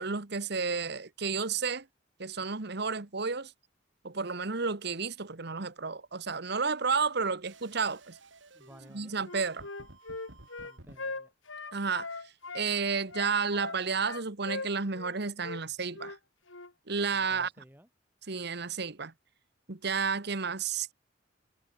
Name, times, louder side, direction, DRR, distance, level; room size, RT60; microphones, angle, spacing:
voice 1, 0.0-1.9 2.2-3.5 4.0-8.2 8.9-9.7 11.7-12.1 12.5-16.2 16.9-17.5 18.3-19.1 19.7-20.9, right 5 dB, 60° right, 1.4 m, -31 dB
sound 1, 7.4-11.0, right 2 dB, 75° right, 4.6 m, -54 dB
voice 2, 8.5-9.1 10.6-11.3 17.1-17.9, equal, 10° right, 4.0 m, -55 dB
Wind instrument woodwind instrument, 9.2-12.7 13.1-15.2 15.4-15.6 15.9-16.2 16.5-16.7, left 3 dB, 90° left, 4.2 m, -40 dB
head